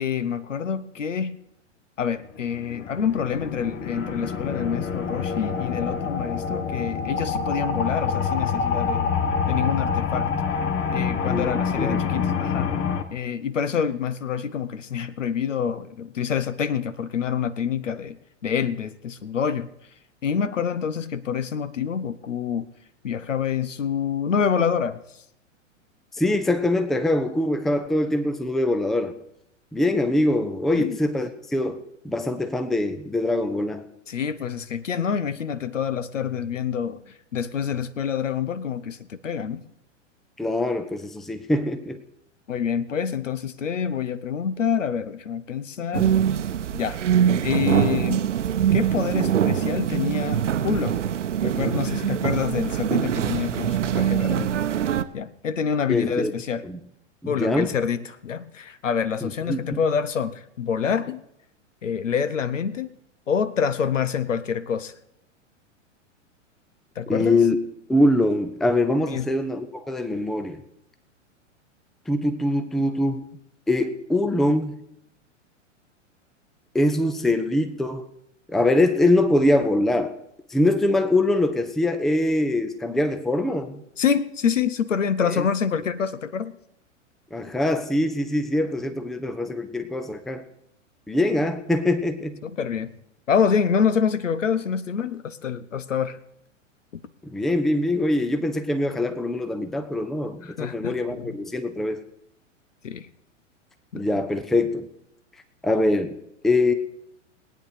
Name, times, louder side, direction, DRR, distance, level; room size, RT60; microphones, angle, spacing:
voice 1, 0.0-1.4 2.0-9.1 9.5-10.3 10.9-12.8 13.1-19.7 20.2-22.7 23.0-25.0 30.7-31.0 34.1-39.6 42.5-46.1 46.7-47.0 47.4-48.3 48.7-51.0 51.4-54.5 55.1-56.6 57.3-61.2 61.8-63.0 63.3-64.9 67.0-67.4 69.1-69.3 84.0-86.5 92.4-92.9 93.3-96.2 100.4-101.3 102.8-103.1 103.9-104.0, left 7 dB, 75° left, 15 dB, 1.0 m, -27 dB
sound 1, 2.4-13.0, left 6 dB, 30° left, 1.2 m, -26 dB
voice 2, 11.3-12.0 26.2-29.1 29.7-31.8 32.0-33.8 40.4-42.0 55.9-56.3 56.6-56.8 57.2-57.7 59.2-59.8 67.1-67.6 67.9-70.6 72.1-73.2 73.7-74.8 76.7-78.1 78.5-80.1 80.5-83.8 85.2-85.4 87.3-90.4 91.1-92.4 97.2-102.0 103.9-104.9 105.6-106.2 106.4-106.7, left 1 dB, ahead, 9 dB, 0.5 m, -23 dB
sound 2, 45.9-55.0, right 9 dB, 65° right, 0.9 m, -23 dB
19.5 x 9.1 x 4.9 m, 0.79 s
figure-of-eight pair, 100°, 38 cm